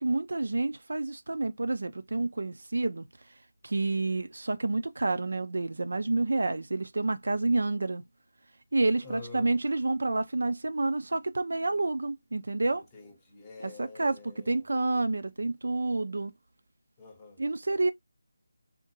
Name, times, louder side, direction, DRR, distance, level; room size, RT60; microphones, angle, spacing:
voice 1, 0.0-3.1 3.6-8.0 8.7-12.8 13.6-14.1 14.5-16.3 17.4-17.9, right 2 dB, 60° right, 0.4 m, -29 dB
voice 2, 9.0-9.6 12.7-14.7 17.0-17.5, left 3 dB, 15° left, 0.8 m, -47 dB
3.7 x 2.1 x 2.9 m
figure-of-eight pair, 155°, 0 cm